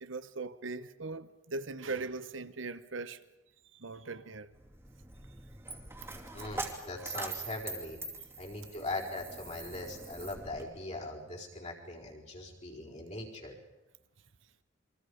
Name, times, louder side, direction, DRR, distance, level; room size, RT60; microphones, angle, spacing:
voice 1, 0.0-3.2 3.7-4.5, right 3 dB, 80° right, 1.0 m, -40 dB
Coin (dropping), 4.5-10.6, right 3 dB, 15° right, 2.6 m, -43 dB
voice 2, 6.3-8.0 8.4-13.6, left 2 dB, 35° left, 4.4 m, -40 dB
28.5 x 23.5 x 5.1 m
head